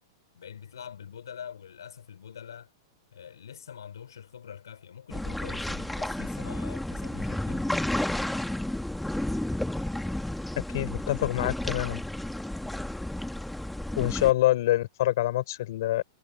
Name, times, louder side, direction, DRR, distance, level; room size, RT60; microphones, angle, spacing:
voice 1, 0.3-2.7 3.1-7.7, left 8 dB, 90° left, 5.6 m, -44 dB
sound 1, 5.1-14.3, left 1 dB, 5° left, 1.7 m, -32 dB
voice 2, 10.7-12.0 14.0-16.0, left 15 dB, 65° left, 3.6 m, -26 dB
hypercardioid pair, 130°, 2 cm